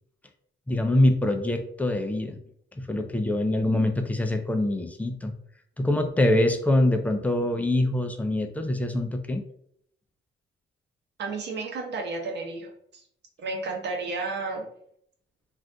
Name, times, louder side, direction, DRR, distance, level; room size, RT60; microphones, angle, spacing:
voice 1, 0.7-2.4 2.8-5.3 5.8-9.4, left 1 dB, 5° left, 6 dB, 0.4 m, -24 dB
voice 2, 11.2-13.0 13.4-14.6, right 3 dB, 60° right, 2 dB, 0.8 m, -32 dB
2.6 x 2.5 x 3.4 m, 0.67 s
cardioid pair, 90°, 20 cm